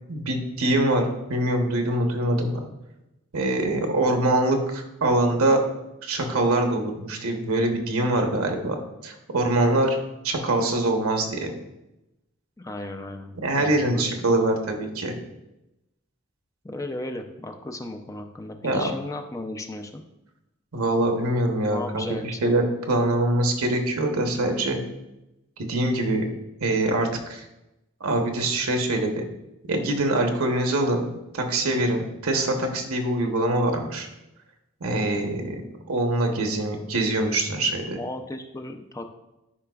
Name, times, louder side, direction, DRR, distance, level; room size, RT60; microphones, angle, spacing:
voice 1, 0.1-2.7 3.3-5.6 6.0-8.8 9.0-10.0 10.2-11.5 13.4-15.1 18.6-18.9 20.7-24.8 25.7-26.2 26.6-27.4 28.0-29.3 29.7-31.1 31.3-34.1 34.8-35.6 35.9-38.0, right 1 dB, 85° right, 3 dB, 1.0 m, -24 dB
voice 2, 12.6-14.1 16.6-20.0 21.6-22.6 38.0-39.0, left 1 dB, 15° left, 5 dB, 0.4 m, -35 dB
10.0 x 4.9 x 2.3 m, 0.92 s
head